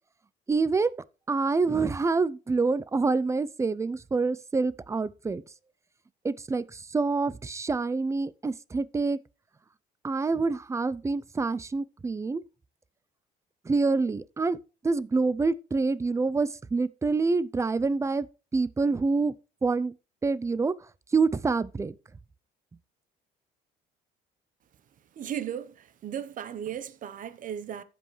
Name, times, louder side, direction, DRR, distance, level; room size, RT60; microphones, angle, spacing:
voice 1, 0.5-0.9 1.3-5.4 6.2-9.2 10.0-12.4 13.7-14.6 14.8-18.3 18.5-19.3 19.6-20.0 20.2-20.7 21.1-21.9, right 4 dB, 15° right, 0.5 m, -26 dB
voice 2, 25.2-27.8, right 9 dB, 50° right, 1.0 m, -36 dB
15.0 x 5.4 x 3.2 m
cardioid pair, 110°, 17 cm